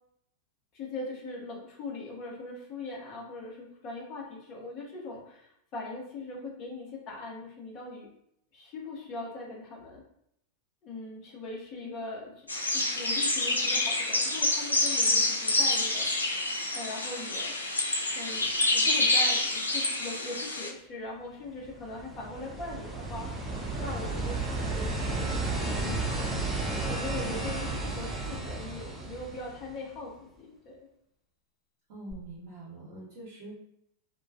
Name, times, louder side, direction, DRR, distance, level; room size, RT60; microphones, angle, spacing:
voice 1, 0.7-8.1 8.5-10.0 10.8-16.4 16.7-17.5 18.1-23.3 23.7-25.0 25.6-26.0 26.5-30.8, left 2 dB, 35° left, -2 dB, 0.7 m, -40 dB
sound 1, 12.5-20.7, left 2 dB, 80° left, 0.3 m, -27 dB
sound 2, 21.5-30.0 32.1-32.2, right 2 dB, 15° right, 0.4 m, -33 dB
voice 2, 31.9-33.6, right 1 dB, 50° right, -7 dB, 0.9 m, -44 dB
2.2 x 2.2 x 2.5 m, 0.76 s
figure-of-eight pair, 90°, 0 cm